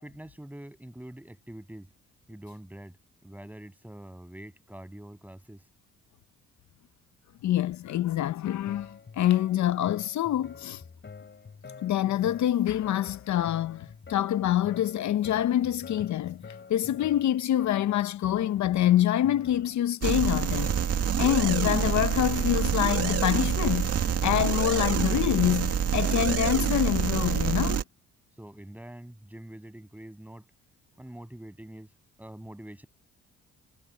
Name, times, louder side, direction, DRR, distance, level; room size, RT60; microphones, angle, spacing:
voice 1, 0.0-1.9 2.3-3.0 3.2-5.6 28.4-30.4 31.0-31.9 32.2-32.9, right 1 dB, 5° right, 7.3 m, -45 dB
voice 2, 7.4-10.8 11.8-20.8 21.2-24.0 24.2-27.8, left 12 dB, 70° left, 0.8 m, -26 dB
sound 1, 8.7-27.7, left 5 dB, 35° left, 5.4 m, -48 dB
sound 2, 20.0-27.8, right 8 dB, 55° right, 2.1 m, -27 dB
cardioid pair, 90°, 30 cm